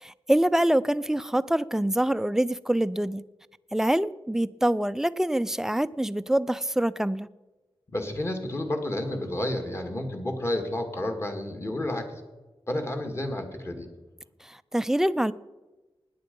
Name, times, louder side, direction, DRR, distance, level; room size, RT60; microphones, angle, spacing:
voice 1, 0.0-3.2 3.7-7.3 14.4-15.3, right 1 dB, 5° right, 0.4 m, -25 dB
voice 2, 7.9-12.1 12.7-13.9, left 1 dB, 30° left, 2.1 m, -30 dB
17.5 x 10.5 x 5.3 m
wide cardioid pair, 145°, 10 cm